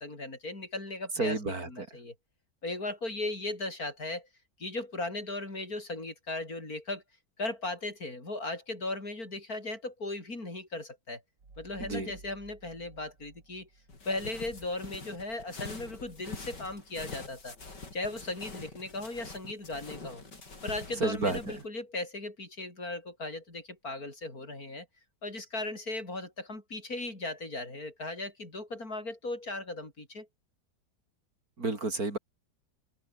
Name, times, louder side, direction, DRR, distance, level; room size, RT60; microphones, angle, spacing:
voice 1, 0.0-1.4 1.7-2.1 2.6-4.3 4.6-7.0 7.4-11.2 11.6-13.7 14.0-17.6 17.9-20.2 20.6-24.9 25.2-30.3, left 2 dB, 60° left, 6.3 m, -37 dB
voice 2, 1.2-1.9 11.8-12.1 21.0-21.6 31.6-32.2, right 3 dB, 60° right, 4.5 m, -31 dB
sound 1, 11.4-14.7, right 3 dB, 85° right, 4.9 m, -54 dB
sound 2, 13.9-21.6, left 3 dB, 85° left, 5.3 m, -45 dB
omnidirectional pair, 1.8 m